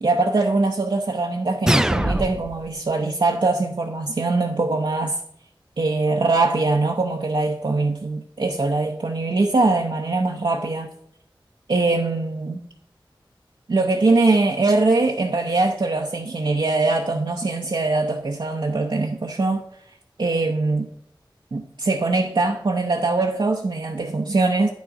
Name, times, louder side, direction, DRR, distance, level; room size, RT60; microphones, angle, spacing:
voice 1, 0.0-5.2 5.8-10.9 11.7-12.6 13.7-19.7 20.2-20.9 21.5-24.7, right 3 dB, 60° right, 0.7 m, -22 dB
sound 1, 1.7-2.7, right 1 dB, 5° right, 0.3 m, -21 dB
9.9 x 6.3 x 4.9 m
wide cardioid pair, 70°, 9 cm